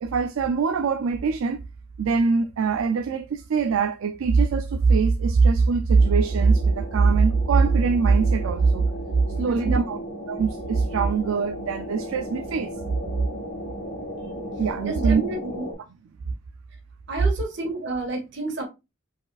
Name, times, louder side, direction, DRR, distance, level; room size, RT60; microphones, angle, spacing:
voice 1, 0.0-1.6 2.0-8.9 9.1-10.0 10.3-12.7 14.6-15.2, right 4 dB, 85° right, 0.4 m, -21 dB
sound 1, 6.0-15.7, equal, 60° left, 1.7 m, -36 dB
voice 2, 9.4-10.0 14.8-15.7 17.1-18.6, right 2 dB, 60° right, 1.8 m, -30 dB
4.8 x 4.2 x 2.3 m
head